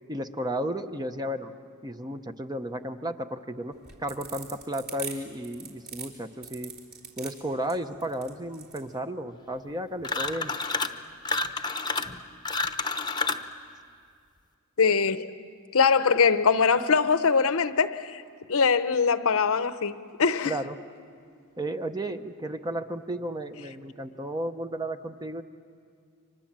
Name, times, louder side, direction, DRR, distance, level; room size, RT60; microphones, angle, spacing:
voice 1, 0.1-1.5 1.8-6.7 7.2-10.5 20.4-20.8 21.6-25.4, right 1 dB, 20° right, 0.7 m, -33 dB
sound 1, 3.7-8.9, right 5 dB, 45° right, 3.8 m, -41 dB
sound 2, 10.0-11.0 11.2-13.5, left 3 dB, 20° left, 0.9 m, -29 dB
voice 2, 14.8-15.3 15.7-18.2 18.5-20.5, left 5 dB, 65° left, 0.8 m, -22 dB
30.0 x 25.0 x 7.4 m
head